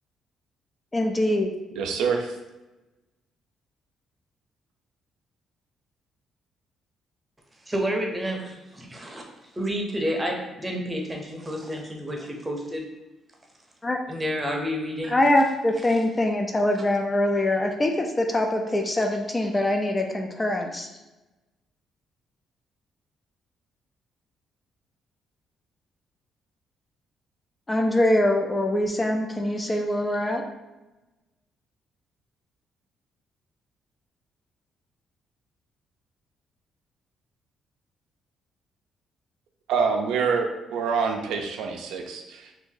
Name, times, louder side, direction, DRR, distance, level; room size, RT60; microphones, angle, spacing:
voice 1, 0.9-1.5 13.8-14.0 15.1-20.9 27.7-30.4, left 1 dB, 20° left, 3 dB, 0.4 m, -23 dB
voice 2, 1.8-2.4 39.7-42.5, right 5 dB, 90° right, 3 dB, 0.4 m, -26 dB
voice 3, 7.7-9.2 9.5-12.9 14.1-15.1, equal, 15° right, 0 dB, 0.7 m, -30 dB
2.7 x 2.5 x 3.8 m, 1.0 s
cardioid pair, 90°, 0 cm